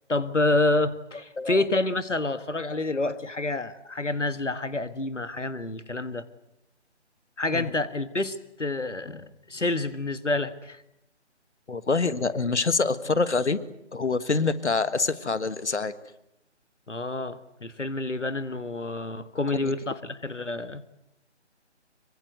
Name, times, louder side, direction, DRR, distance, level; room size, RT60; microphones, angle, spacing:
voice 1, 0.1-6.3 7.4-10.8 16.9-20.8, left 2 dB, 90° left, 13 dB, 1.5 m, -28 dB
voice 2, 11.7-13.6 13.9-15.9 19.6-19.7, left 4 dB, 70° left, 14 dB, 1.7 m, -25 dB
26.0 x 24.0 x 7.9 m, 0.81 s
figure-of-eight pair, 155°, 35 cm